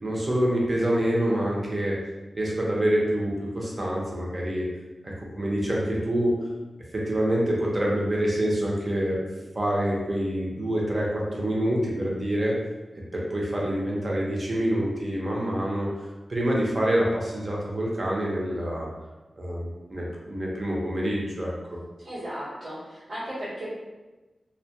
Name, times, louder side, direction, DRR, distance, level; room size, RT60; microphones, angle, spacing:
voice 1, 0.0-2.0 2.3-4.7 5.0-6.3 6.9-9.2 9.5-12.5 13.1-15.9 16.3-18.9 19.4-21.5, right 1 dB, 40° right, -4 dB, 0.6 m, -26 dB
voice 2, 22.0-23.7, equal, 85° right, -14 dB, 0.9 m, -35 dB
2.2 x 2.1 x 2.7 m, 1.2 s
wide cardioid pair, 75°, 0 cm